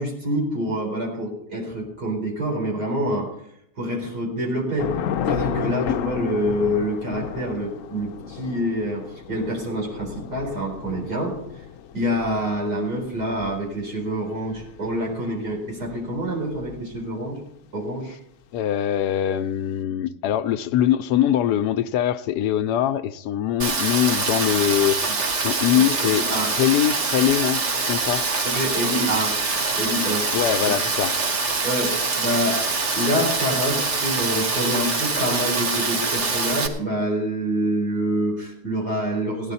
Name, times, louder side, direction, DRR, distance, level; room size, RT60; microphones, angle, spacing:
voice 1, 0.0-3.3 3.8-4.9 5.3-11.4 11.9-17.4 17.7-18.1 25.1-25.2 25.7-25.8 26.1-26.5 28.4-29.4 29.8-30.3 30.7-30.8 31.6-32.6 32.9-39.5, equal, 90° right, 5.0 m, -26 dB
Thunder / Rain, 4.8-17.3, left 9 dB, 65° left, 0.9 m, -33 dB
voice 2, 18.5-25.0 25.4-26.2 26.6-28.2 30.3-31.1, left 11 dB, 90° left, 1.2 m, -22 dB
Rain, 23.6-36.7, right 4 dB, 50° right, 1.4 m, -24 dB
16.5 x 11.0 x 4.1 m
omnidirectional pair, 1.7 m